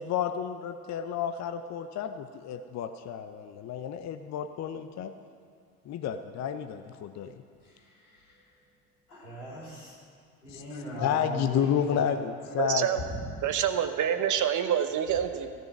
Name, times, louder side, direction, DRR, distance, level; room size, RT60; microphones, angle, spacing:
voice 1, 0.0-5.1 5.9-7.4 10.5-12.9, left 8 dB, 40° left, 8 dB, 0.7 m, -31 dB
voice 2, 7.6-8.4 9.1-10.0 10.4-12.2 13.0-13.2, equal, 90° left, -5 dB, 3.7 m, -39 dB
voice 3, 12.6-13.0 13.4-15.5, right 9 dB, 40° right, 9 dB, 1.0 m, -27 dB
15.5 x 9.3 x 6.0 m, 2.2 s
hypercardioid pair, 65°, 44 cm